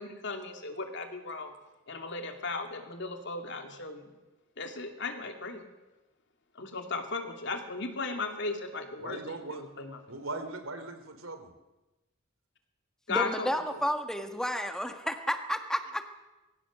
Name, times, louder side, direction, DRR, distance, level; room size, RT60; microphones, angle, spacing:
voice 1, 0.0-1.5 1.9-4.1 4.6-5.7 6.5-10.1 13.1-13.8, left 3 dB, 60° left, 5 dB, 2.6 m, -36 dB
voice 2, 9.0-9.6 10.1-11.5, right 2 dB, 85° right, 7 dB, 3.1 m, -39 dB
voice 3, 13.1-16.0, equal, 5° left, 7 dB, 1.5 m, -31 dB
22.0 x 16.5 x 7.5 m, 1.1 s
head